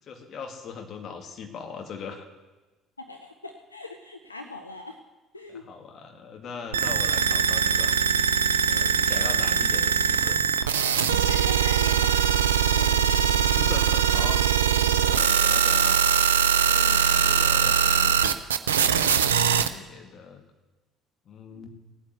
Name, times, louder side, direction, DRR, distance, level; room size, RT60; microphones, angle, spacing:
voice 1, 0.1-2.3 5.5-8.0 8.7-10.4 10.9-11.4 13.3-16.1 16.6-18.2 18.6-20.4 21.3-21.7, left 5 dB, 45° left, 4 dB, 2.2 m, -40 dB
voice 2, 3.0-5.0 5.3-5.6 8.7-9.0 11.2-12.2 12.8-13.1 16.7-17.1, left 2 dB, 85° left, 5 dB, 0.7 m, -40 dB
sound 1, 6.7-19.7, right 8 dB, 75° right, 0.6 m, -22 dB
17.5 x 8.8 x 8.1 m, 1.2 s
figure-of-eight pair, 55°, 0 cm